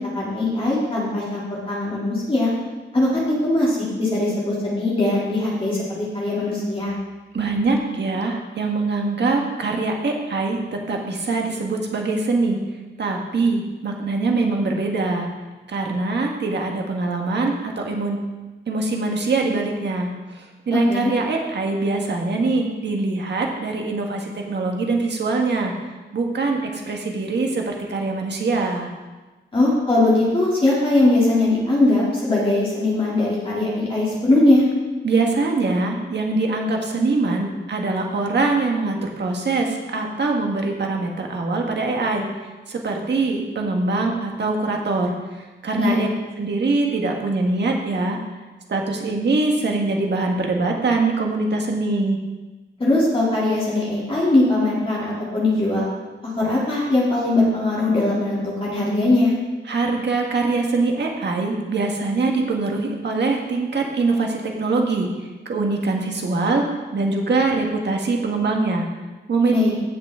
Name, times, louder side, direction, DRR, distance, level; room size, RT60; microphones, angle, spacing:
voice 1, 0.1-2.5 2.9-6.9 20.7-21.1 29.5-34.6 45.8-46.1 52.8-55.0 55.3-55.9 56.4-59.3 69.5-69.7, left 2 dB, 25° left, -7 dB, 2.8 m, -20 dB
voice 2, 7.3-12.6 13.0-15.3 15.7-18.2 18.7-20.1 20.7-25.7 26.1-28.9 35.0-42.3 42.7-45.1 45.6-46.1 46.4-48.2 48.7-52.2 59.7-65.1 65.4-66.6 66.9-68.9 69.3-69.5, right 3 dB, 60° right, 1 dB, 1.6 m, -23 dB
16.0 x 6.0 x 3.7 m, 1.2 s
wide cardioid pair, 140°, 20 cm